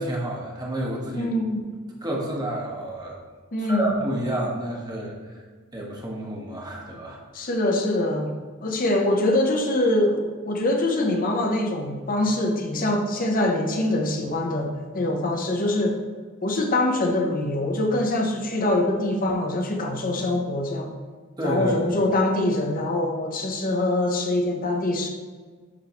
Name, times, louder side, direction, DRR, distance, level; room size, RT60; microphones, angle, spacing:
voice 1, 0.0-1.3 2.0-3.2 3.6-5.4 5.7-7.2 21.4-21.9, right 1 dB, 20° right, -2 dB, 1.1 m, -29 dB
voice 2, 1.1-1.6 3.5-3.8 7.3-8.3 8.6-16.0 16.4-20.9 21.4-25.1, left 1 dB, 40° left, 2 dB, 0.8 m, -24 dB
10.5 x 3.6 x 3.0 m, 1.5 s
head